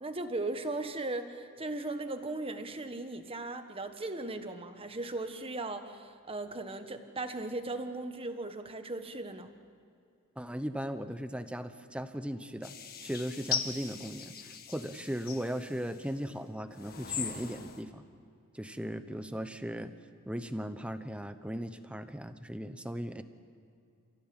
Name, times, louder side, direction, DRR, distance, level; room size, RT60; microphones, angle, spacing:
voice 1, 0.0-9.5, right 2 dB, 25° right, 7 dB, 1.4 m, -37 dB
voice 2, 10.4-12.8 13.0-18.0 18.5-19.9 20.3-23.2, equal, 5° right, 10 dB, 1.0 m, -37 dB
sound 1, 12.6-16.1 16.7-17.8, left 7 dB, 45° left, 1.9 m, -39 dB
29.5 x 16.0 x 8.9 m, 2.5 s
head